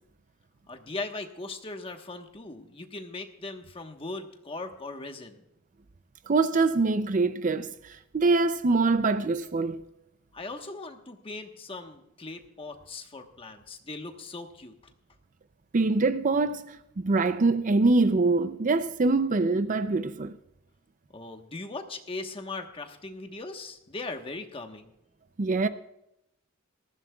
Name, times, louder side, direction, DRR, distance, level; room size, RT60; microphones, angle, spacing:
voice 1, 0.7-5.4 10.3-14.7 21.1-24.9, left 3 dB, 25° left, 1.2 m, -39 dB
voice 2, 6.3-9.8 15.7-20.4 25.4-25.7, right 3 dB, 40° right, 0.5 m, -24 dB
19.0 x 15.0 x 2.3 m
head